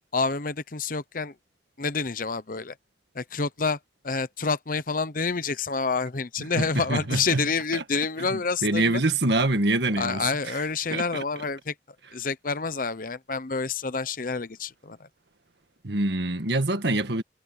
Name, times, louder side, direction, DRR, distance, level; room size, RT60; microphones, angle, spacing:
voice 1, 0.1-1.4 1.8-2.8 3.1-3.8 4.0-9.0 9.9-11.7 12.1-15.1, left 4 dB, 50° left, 0.9 m, -28 dB
voice 2, 6.6-7.4 7.7-7.8 8.3-10.2 10.9-11.2 15.8-17.2, right 2 dB, 75° right, 1.8 m, -25 dB
head